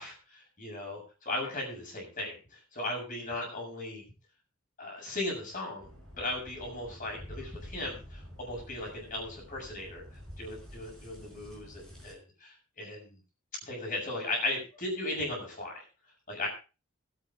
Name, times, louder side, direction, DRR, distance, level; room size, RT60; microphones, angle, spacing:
voice 1, 0.0-4.0 4.8-5.9 6.2-10.0 10.4-13.2 13.6-15.8 16.3-16.5, left 2 dB, 40° left, 0 dB, 7.3 m, -37 dB
sound 1, 5.8-12.1, equal, 5° left, 5.6 m, -48 dB
21.5 x 8.9 x 3.7 m, 0.33 s
head